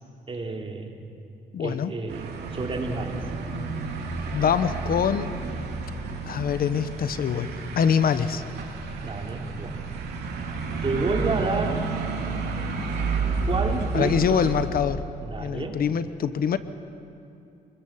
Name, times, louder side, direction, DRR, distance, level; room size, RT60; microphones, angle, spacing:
voice 1, 0.3-1.0 1.6-3.2 9.0-9.9 10.8-11.9 13.5-14.5 15.2-15.8, right 3 dB, 35° right, 2 dB, 3.3 m, -30 dB
voice 2, 1.5-1.9 4.3-5.3 6.3-8.4 13.9-15.0 15.4-16.6, left 7 dB, 60° left, 12 dB, 1.0 m, -24 dB
sound 1, 2.1-14.7, right 4 dB, 90° right, 3.7 m, -31 dB
28.0 x 21.5 x 7.6 m, 2.7 s
cardioid pair, 115°, 17 cm